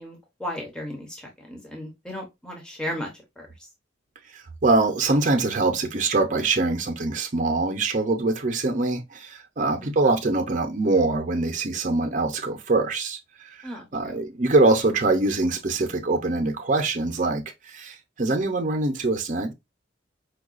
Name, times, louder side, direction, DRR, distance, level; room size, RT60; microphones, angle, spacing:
voice 1, 0.0-3.1 3.4-3.5 9.8-9.9 13.6-14.1, left 1 dB, 5° left, 0.7 m, -35 dB
voice 2, 4.3-13.2 13.6-19.5, right 3 dB, 40° right, 0.5 m, -23 dB
4.6 x 2.3 x 2.4 m
head